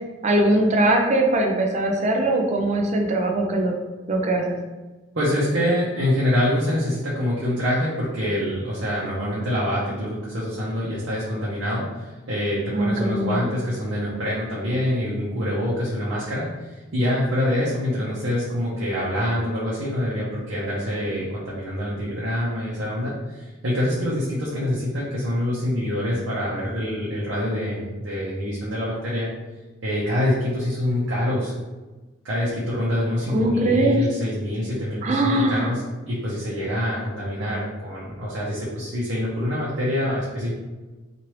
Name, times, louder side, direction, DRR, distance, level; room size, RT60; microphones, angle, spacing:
voice 1, 0.2-3.7 4.1-4.6 12.7-13.4 33.3-34.0 35.0-35.7, right 1 dB, 35° right, 2 dB, 0.4 m, -21 dB
voice 2, 5.1-29.3 29.8-31.5 32.2-35.8 36.1-40.5, left 1 dB, 75° right, -8 dB, 0.8 m, -25 dB
3.1 x 2.5 x 2.9 m, 1.2 s
head